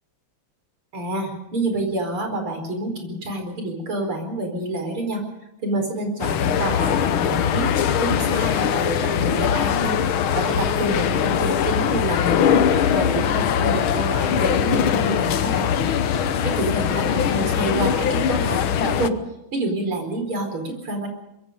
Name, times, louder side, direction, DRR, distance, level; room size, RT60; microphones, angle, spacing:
voice 1, 0.9-5.2 5.6-7.7 8.0-10.0 10.4-12.6 12.9-16.1 16.4-19.2 19.5-21.1, right 1 dB, 85° right, 4 dB, 5.5 m, -27 dB
sound 1, 6.2-19.1, left 8 dB, 75° left, 1.8 m, -21 dB
24.5 x 22.0 x 5.3 m, 0.83 s
omnidirectional pair, 2.3 m